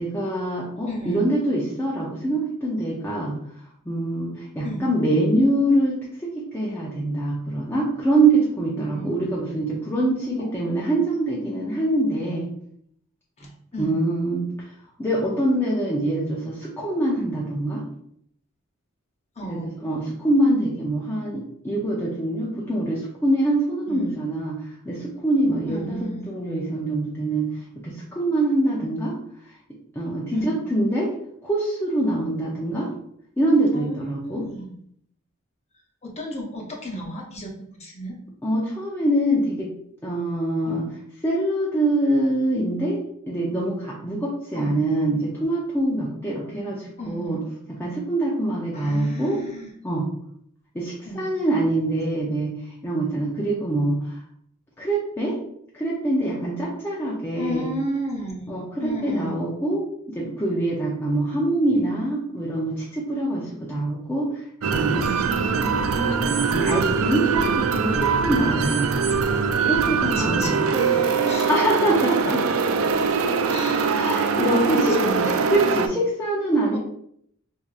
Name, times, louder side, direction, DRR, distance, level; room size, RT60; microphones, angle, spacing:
voice 1, 0.0-3.4 3.9-12.5 13.8-14.5 15.0-17.8 19.5-27.5 27.8-29.2 30.0-31.1 31.4-32.9 33.4-34.5 38.4-39.7 40.0-40.9 41.2-43.0 43.3-47.4 47.7-49.4 49.8-50.1 50.7-54.2 54.8-55.4 55.7-57.7 58.5-59.8 60.1-65.3 66.5-68.9 69.6-70.6 71.5-72.6 73.4-73.5 73.9-75.0 75.5-76.8, right 1 dB, 10° left, -6 dB, 0.6 m, -24 dB
voice 2, 0.9-1.3 4.6-4.9 8.8-9.1 10.4-10.5 13.4-14.0 19.4-19.7 23.9-24.2 25.7-26.3 30.3-30.6 33.7-34.7 36.0-37.5 37.8-38.2 40.6-40.8 44.5-44.8 47.0-47.4 48.7-49.7 51.0-51.2 57.3-58.5 58.8-59.4 65.1-66.6 70.0-71.5 72.9-73.1 73.5-73.9 74.5-75.4 76.7-76.8, equal, 30° left, -1 dB, 0.9 m, -33 dB
sound 1, 64.6-75.9, right 5 dB, 90° right, 0.4 m, -22 dB
4.7 x 2.7 x 2.4 m, 0.68 s
head